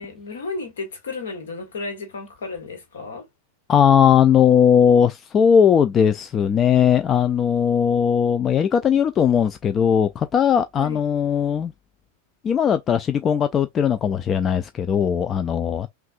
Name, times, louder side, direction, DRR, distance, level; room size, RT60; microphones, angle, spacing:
voice 1, 0.0-3.2 10.8-11.0, left 3 dB, 65° left, 1.5 m, -33 dB
voice 2, 3.7-11.7 12.4-15.9, left 8 dB, 25° left, 0.3 m, -18 dB
5.7 x 2.4 x 2.5 m
figure-of-eight pair, 90°, 0 cm